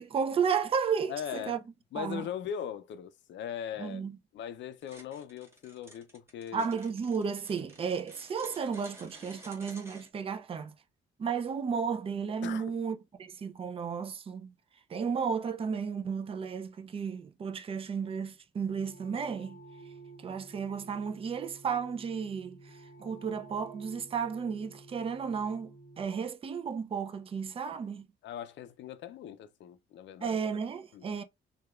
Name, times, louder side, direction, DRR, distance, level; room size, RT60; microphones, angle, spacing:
voice 1, 0.0-1.6 2.0-2.3 3.8-4.2 6.5-10.7 11.2-14.5 14.9-19.6 20.2-28.1 30.2-31.2, right 6 dB, 30° right, 0.4 m, -33 dB
voice 2, 1.1-1.6 1.9-4.0 4.3-6.7 12.4-12.7 28.2-30.4 30.9-31.0, left 9 dB, 65° left, 0.5 m, -40 dB
sound 1, 4.8-10.1, right 1 dB, 10° right, 0.9 m, -53 dB
sound 2, 18.7-26.0, right 2 dB, 60° right, 1.2 m, -52 dB
2.9 x 2.3 x 2.3 m
cardioid pair, 90°, 20 cm